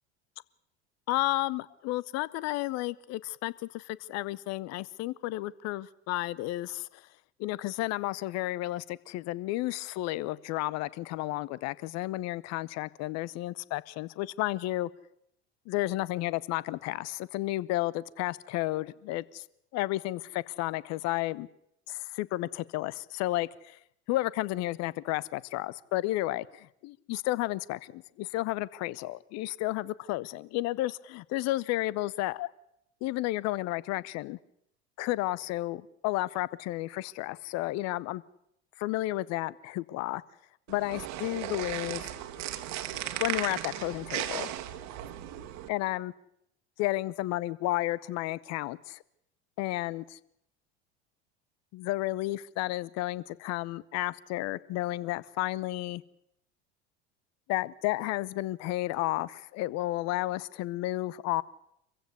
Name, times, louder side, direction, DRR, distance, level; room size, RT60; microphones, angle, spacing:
voice 1, 1.1-6.9 7.4-14.9 15.7-19.4 19.7-21.5 21.9-23.8 24.1-32.5 33.0-34.4 35.0-38.2 38.8-40.2 40.7-42.1 43.2-44.5 45.7-46.1 46.8-49.0 49.6-50.2 51.7-56.0 57.5-61.4, left 17 dB, 50° left, 21 dB, 0.9 m, -32 dB
sound 1, 40.7-45.7, right 12 dB, 55° right, 1.6 m, -36 dB
25.0 x 15.5 x 8.1 m, 0.76 s
hypercardioid pair, 75°, 34 cm